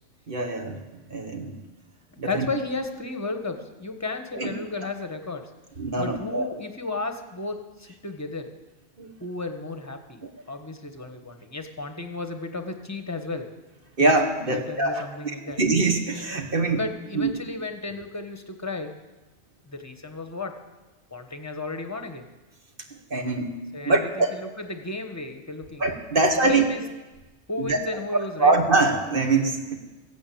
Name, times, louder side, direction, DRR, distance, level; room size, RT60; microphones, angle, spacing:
voice 1, 0.3-0.8 1.1-1.6 2.2-2.5 4.3-4.5 5.8-6.5 9.0-9.1 10.2-10.3 14.0-16.8 17.1-17.3 23.1-23.6 23.9-24.4 25.8-26.7 27.6-27.8 28.4-29.8, right 3 dB, 50° right, 3 dB, 1.8 m, -23 dB
voice 2, 2.2-5.5 6.0-8.5 9.2-13.5 14.5-15.6 16.7-18.9 19.6-20.5 21.1-22.2 23.7-24.0 24.3-25.9 26.4-26.8 27.5-28.5, left 3 dB, 15° left, 6 dB, 1.2 m, -34 dB
14.5 x 9.1 x 8.6 m, 1.1 s
omnidirectional pair, 1.2 m